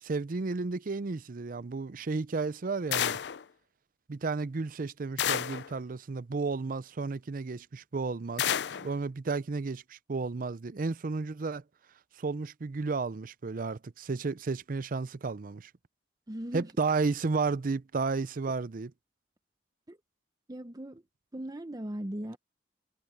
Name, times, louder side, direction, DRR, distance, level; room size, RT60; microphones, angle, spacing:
voice 1, 0.0-3.2 4.1-8.5 8.7-11.6 12.2-15.7 16.5-18.9, right 4 dB, 50° right, 0.5 m, -32 dB
sound 1, 2.9-3.4 5.2-5.7 8.4-8.9, left 9 dB, 75° left, 0.5 m, -30 dB
voice 2, 16.3-16.7 19.9-20.0 20.5-21.0 21.3-22.4, right 1 dB, 20° right, 0.8 m, -38 dB
head